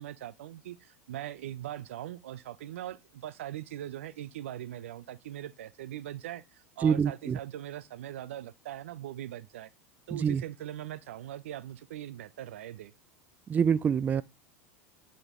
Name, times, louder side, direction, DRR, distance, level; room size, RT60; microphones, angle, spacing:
voice 1, 0.0-9.7 10.1-12.9, right 12 dB, 75° right, 0.6 m, -41 dB
voice 2, 6.8-7.4 10.1-10.4 13.5-14.2, right 7 dB, 25° right, 0.3 m, -26 dB
10.5 x 3.8 x 3.7 m
hypercardioid pair, 90°, 7 cm